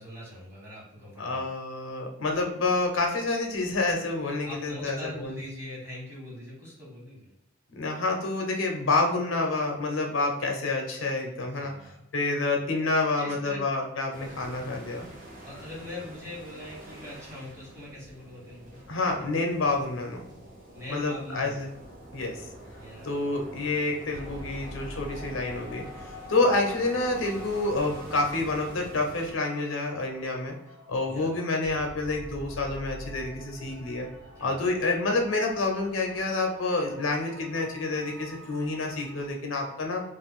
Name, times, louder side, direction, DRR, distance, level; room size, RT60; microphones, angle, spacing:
voice 1, 0.0-1.5 4.4-7.3 11.5-12.0 13.0-13.7 15.4-18.8 20.7-21.6 22.8-23.3 25.2-25.4 31.1-31.4 34.3-34.6, left 1 dB, 15° right, -6 dB, 1.3 m, -42 dB
voice 2, 1.2-5.4 7.8-15.1 18.9-20.2 20.9-21.7 22.1-22.4 23.0-30.6 30.9-34.1 34.4-40.0, left 2 dB, 75° left, 2 dB, 0.6 m, -28 dB
sound 1, 14.1-29.3, right 1 dB, 45° right, 0.8 m, -46 dB
sound 2, 24.1-39.3, left 1 dB, 80° right, 0.6 m, -46 dB
2.4 x 2.2 x 3.5 m, 0.84 s
head